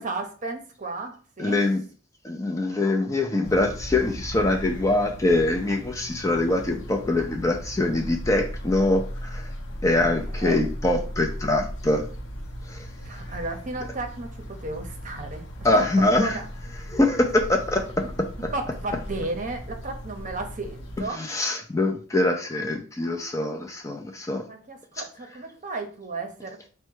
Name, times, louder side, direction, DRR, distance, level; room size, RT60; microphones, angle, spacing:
voice 1, 0.0-1.6 10.0-10.1 10.4-10.6 13.0-15.5 15.7-16.5 18.5-21.3 24.4-26.7, right 2 dB, 40° right, 5 dB, 0.7 m, -34 dB
voice 2, 1.4-1.8 2.2-9.4 9.8-12.1 12.7-12.8 15.6-16.4 16.9-18.0 21.2-24.4, left 2 dB, 15° left, 2 dB, 0.4 m, -23 dB
sound 1, 3.4-21.1, equal, 60° left, 0.8 m, -37 dB
4.3 x 2.2 x 4.5 m, 0.40 s
head